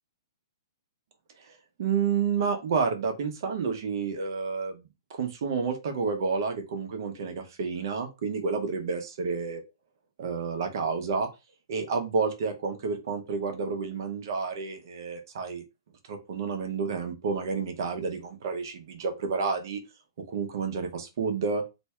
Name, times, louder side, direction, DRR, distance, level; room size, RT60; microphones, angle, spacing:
voice 1, 1.8-4.8 5.1-9.6 10.2-11.3 11.7-15.6 16.1-19.8 20.2-21.6, right 5 dB, 50° right, 5 dB, 0.7 m, -30 dB
2.6 x 2.3 x 4.1 m, 0.26 s
hypercardioid pair, 170°, 3 cm